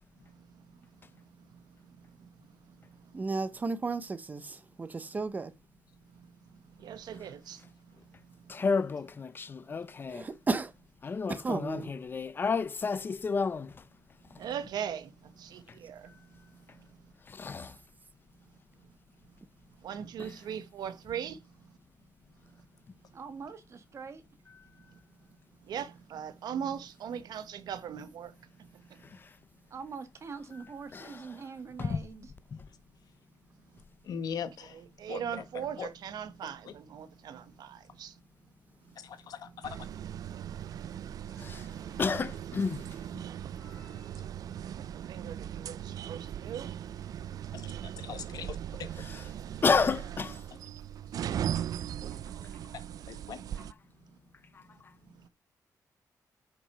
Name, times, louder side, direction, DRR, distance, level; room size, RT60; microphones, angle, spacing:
voice 1, 0.4-0.8 1.4-2.3 2.7-3.2 5.1-5.2 6.1-8.5 14.4-17.1 19.8-21.7 24.9-25.0 25.6-29.0 34.6-38.2 38.9-39.0 39.4-39.7 40.7-40.8 41.4-41.7 43.7-43.8 44.6-46.8 55.1-55.3, right 8 dB, 80° right, 1.0 m, -41 dB
voice 2, 3.1-5.5 10.1-10.7 11.3-11.9, right 3 dB, 25° right, 0.7 m, -33 dB
voice 3, 8.5-10.3 11.0-13.7 17.3-17.7 30.9-31.0 31.8-32.0 41.4-41.6 42.0-42.8 49.0-49.2 49.6-50.4, left 5 dB, 30° left, 0.7 m, -30 dB
voice 4, 23.1-24.2 29.7-32.3, right 5 dB, 45° right, 1.7 m, -43 dB
voice 5, 34.1-34.8 35.1-35.2 35.8-35.9 39.0-39.8 47.5-47.7 48.0-48.9 53.1-53.4, left 7 dB, 70° left, 1.6 m, -39 dB
sound 1, 39.6-53.7, right 10 dB, 60° right, 0.4 m, -39 dB
8.6 x 5.9 x 5.5 m
wide cardioid pair, 160°, 7 cm